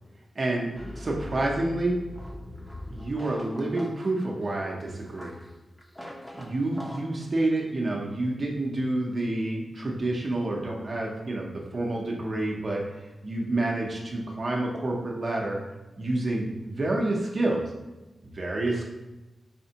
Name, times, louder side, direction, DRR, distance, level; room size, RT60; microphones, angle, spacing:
voice 1, 0.4-0.7 1.0-2.0 2.9-5.4 6.3-12.8 13.2-15.6 16.0-17.6 18.2-18.9, right 2 dB, 50° right, -2 dB, 0.6 m, -28 dB
sound 1, 0.7-7.0, left 1 dB, 15° left, 0.7 m, -42 dB
4.2 x 3.4 x 2.8 m, 1.1 s
wide cardioid pair, 80°, 0 cm